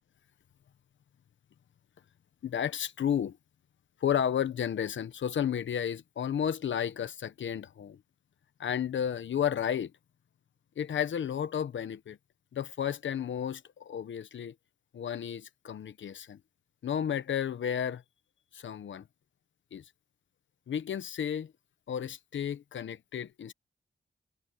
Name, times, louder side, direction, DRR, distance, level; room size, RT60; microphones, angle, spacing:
voice 1, 2.4-3.4 4.0-8.0 8.6-9.9 10.8-12.2 12.5-14.5 14.9-16.4 16.8-18.0 18.5-19.0 19.7-19.8 20.7-21.5 21.9-23.5, left 9 dB, 90° left, 0.9 m, -32 dB
cardioid pair, 75°, 19 cm